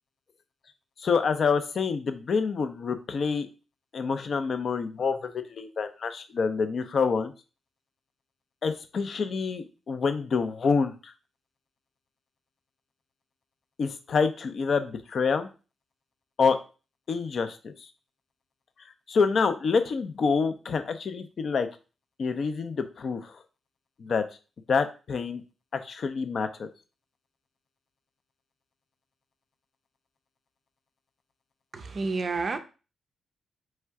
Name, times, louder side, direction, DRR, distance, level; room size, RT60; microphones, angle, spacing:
voice 1, 1.0-3.5 3.9-7.3 8.6-11.1 13.8-15.5 16.4-16.6 17.1-17.9 19.1-21.7 22.2-23.3 24.0-24.2 24.7-25.4 25.7-26.7, left 5 dB, 45° left, 0.5 m, -27 dB
voice 2, 31.7-32.6, right 3 dB, 35° right, 0.4 m, -29 dB
3.6 x 3.2 x 4.6 m
wide cardioid pair, 150°, 0 cm